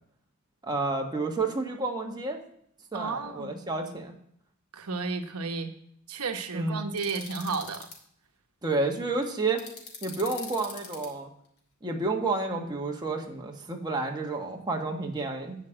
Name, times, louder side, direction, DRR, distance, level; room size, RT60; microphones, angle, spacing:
voice 1, 0.6-2.4 2.9-4.1 6.5-6.9 8.6-9.6 10.0-11.3 11.8-15.6, right 3 dB, 20° right, 1 dB, 1.5 m, -30 dB
voice 2, 2.9-3.6 4.7-5.7 6.1-7.9, right 4 dB, 90° right, 6 dB, 1.0 m, -32 dB
sound 1, 7.0-7.9 9.6-11.1, left 5 dB, 80° left, 2.8 m, -42 dB
12.0 x 5.2 x 8.8 m, 0.67 s
head